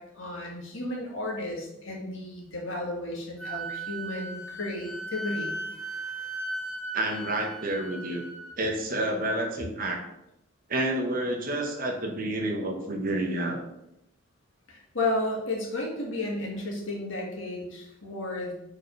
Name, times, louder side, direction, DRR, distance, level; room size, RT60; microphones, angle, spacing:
voice 1, 0.0-5.6 14.7-18.5, left 2 dB, 70° left, -2 dB, 1.8 m, -33 dB
Wind instrument woodwind instrument, 3.4-8.5, right 2 dB, 5° left, 1.1 m, -37 dB
voice 2, 6.9-8.2 8.6-10.0 10.7-13.6, right 1 dB, 45° right, 2 dB, 1.0 m, -29 dB
5.1 x 4.0 x 5.2 m, 0.84 s
head